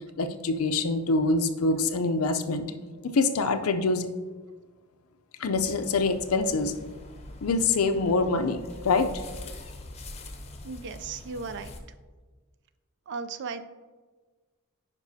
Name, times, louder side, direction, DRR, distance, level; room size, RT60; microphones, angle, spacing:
voice 1, 0.2-2.7 3.0-4.1 5.4-6.7 7.4-9.1, left 3 dB, 85° left, 9 dB, 0.5 m, -25 dB
sound 1, 5.5-11.8, left 1 dB, 30° left, 0.7 m, -44 dB
voice 2, 10.6-11.7 13.1-13.7, right 4 dB, 55° right, 11 dB, 0.4 m, -36 dB
9.8 x 5.2 x 2.7 m, 1.3 s
head